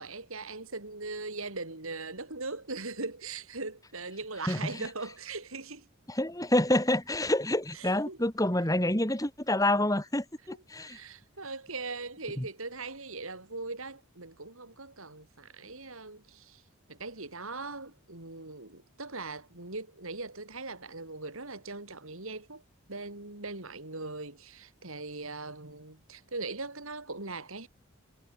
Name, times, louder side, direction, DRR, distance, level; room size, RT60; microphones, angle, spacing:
voice 1, 0.0-5.9 7.7-8.2 10.5-16.6 16.9-22.6 22.9-27.7, right 3 dB, 70° right, 4.0 m, -40 dB
voice 2, 4.5-4.8 6.1-11.0 12.4-12.5, left 1 dB, 15° left, 2.0 m, -28 dB
head